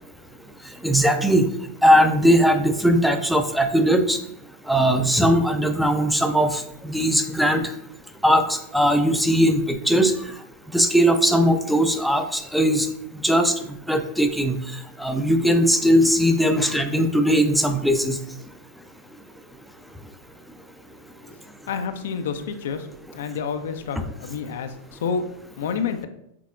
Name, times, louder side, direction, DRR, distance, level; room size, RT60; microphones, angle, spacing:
voice 1, 0.8-1.5 1.8-4.2 4.7-7.6 8.2-10.1 10.7-12.9 13.2-13.5 13.9-14.6 15.0-18.2, equal, ahead, 6 dB, 0.4 m, -19 dB
voice 2, 21.7-22.9 23.1-25.3 25.6-26.1, left 6 dB, 60° left, 8 dB, 0.4 m, -29 dB
5.9 x 3.6 x 2.4 m, 0.76 s
figure-of-eight pair, 90°, 0 cm